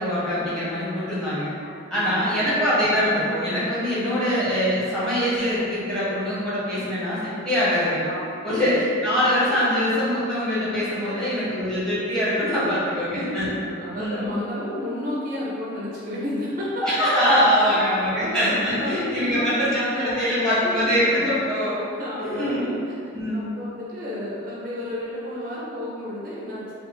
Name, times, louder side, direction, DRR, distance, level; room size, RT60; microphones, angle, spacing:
voice 1, 0.0-1.5 1.9-8.0 8.4-13.5 13.9-14.3 16.8-21.7 22.2-22.7 23.1-23.5, equal, 5° left, -11 dB, 1.0 m, -23 dB
voice 2, 1.9-2.4 8.0-8.8 11.0-11.1 12.6-13.1 13.4-16.8 17.5-17.8 18.1-18.3 18.6-21.4 21.9-22.7 23.3-26.7, left 1 dB, 45° right, -6 dB, 0.5 m, -32 dB
3.3 x 2.4 x 3.1 m, 2.6 s
head